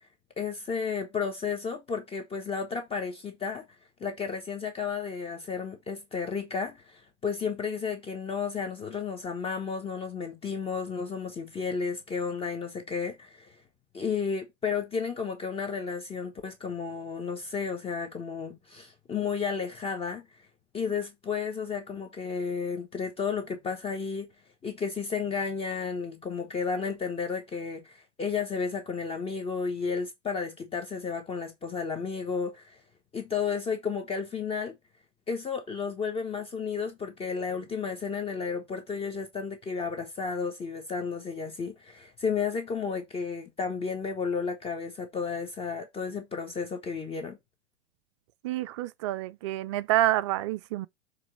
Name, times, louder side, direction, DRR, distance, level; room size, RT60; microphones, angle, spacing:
voice 1, 0.4-3.7 4.0-13.5 13.9-20.3 20.7-24.3 24.6-32.8 33.1-34.8 35.3-47.4, left 5 dB, 15° left, 1.1 m, -32 dB
voice 2, 48.4-50.9, right 14 dB, 25° right, 0.3 m, -28 dB
7.6 x 3.1 x 6.1 m
figure-of-eight pair, 105°, 36 cm